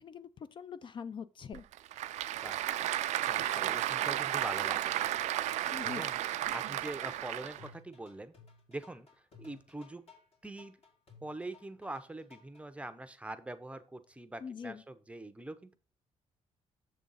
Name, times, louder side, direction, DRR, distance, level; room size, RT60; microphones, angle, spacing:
voice 1, 0.0-1.6 5.7-6.1 14.4-14.8, left 6 dB, 45° left, 0.4 m, -43 dB
Applause / Crowd, 1.5-7.7, right 13 dB, 80° right, 0.4 m, -33 dB
voice 2, 3.2-8.3 8.7-9.1 9.4-10.1 10.4-10.8 11.2-15.8, right 2 dB, 10° right, 0.6 m, -44 dB
sound 1, 5.8-12.6, left 4 dB, 60° left, 2.3 m, -58 dB
6.7 x 3.8 x 5.4 m
cardioid pair, 100°, 12 cm